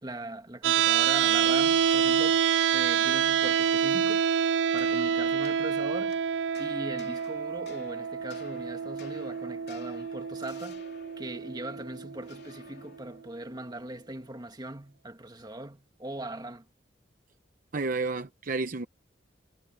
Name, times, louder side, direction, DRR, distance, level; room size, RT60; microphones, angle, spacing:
voice 1, 0.0-2.5 2.7-4.3 4.7-6.2 6.6-10.8 11.2-16.7, right 1 dB, 25° right, 2.0 m, -40 dB
sound 1, 0.6-12.7, right 7 dB, 70° right, 0.3 m, -27 dB
sound 2, 1.4-13.3, left 4 dB, 60° left, 3.8 m, -53 dB
voice 2, 17.7-18.9, right 3 dB, 45° right, 0.8 m, -30 dB
head